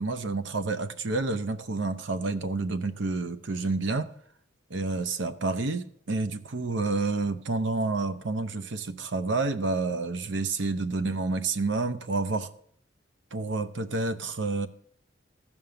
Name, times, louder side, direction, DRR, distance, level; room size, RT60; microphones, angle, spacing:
voice 1, 0.0-4.1 4.7-12.5 13.3-14.7, right 3 dB, 70° right, 0.7 m, -29 dB
14.5 x 5.5 x 6.6 m
head